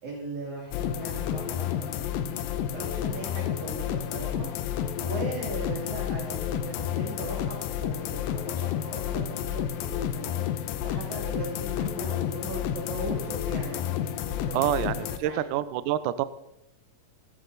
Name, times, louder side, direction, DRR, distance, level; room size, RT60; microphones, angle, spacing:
voice 1, 0.0-2.4 2.7-4.5 5.0-10.5 10.8-14.6 15.2-15.4, right 2 dB, 55° right, -6 dB, 4.9 m, -38 dB
sound 1, 0.7-15.2, left 10 dB, 85° left, 2.6 m, -31 dB
voice 2, 14.5-16.2, right 12 dB, 80° right, 14 dB, 2.0 m, -27 dB
17.5 x 13.5 x 4.1 m, 0.84 s
omnidirectional pair, 4.0 m